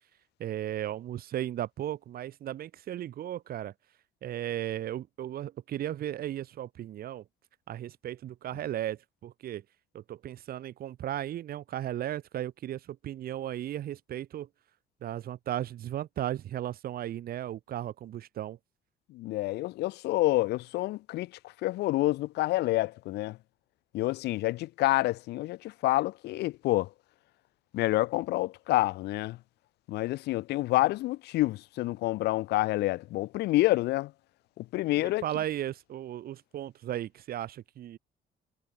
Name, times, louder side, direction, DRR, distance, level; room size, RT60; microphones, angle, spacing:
voice 1, 0.4-3.7 4.2-7.2 7.7-9.6 9.9-14.5 15.0-18.6 35.0-38.0, right 12 dB, 60° right, 4.9 m, -35 dB
voice 2, 19.1-21.3 21.6-23.4 23.9-26.9 27.7-29.4 29.9-34.1 34.6-35.2, left 18 dB, 80° left, 0.9 m, -28 dB
cardioid pair, 110°, 17 cm